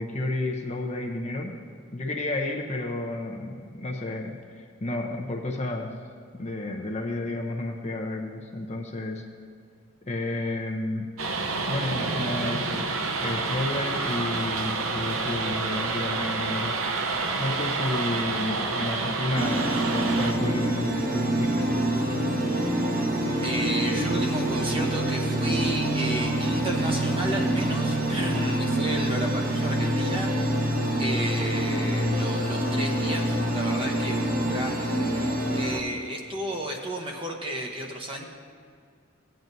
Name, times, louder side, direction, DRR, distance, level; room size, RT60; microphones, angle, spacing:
voice 1, 0.0-1.6 1.9-5.9 6.4-9.2 10.0-11.1 11.7-12.9 13.2-16.8 17.4-21.7, left 2 dB, 30° left, 2 dB, 0.7 m, -31 dB
sound 1, 11.2-20.3, right 3 dB, 80° right, 0.8 m, -28 dB
sound 2, 19.3-35.8, right 1 dB, 40° right, 1.3 m, -26 dB
voice 2, 23.4-38.2, right 1 dB, 25° right, 1 dB, 0.8 m, -33 dB
15.5 x 9.0 x 2.7 m, 2.2 s
head